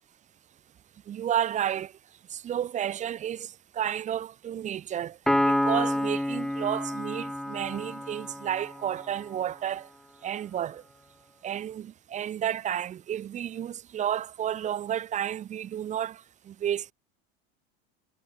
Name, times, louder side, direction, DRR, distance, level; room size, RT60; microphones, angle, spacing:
voice 1, 1.1-1.9 2.3-5.2 5.5-9.9 10.2-10.8 11.4-16.9, right 10 dB, 25° right, 2.1 m, -31 dB
Piano, 5.3-8.9, left 1 dB, ahead, 1.5 m, -28 dB
cardioid pair, 165°, 29 cm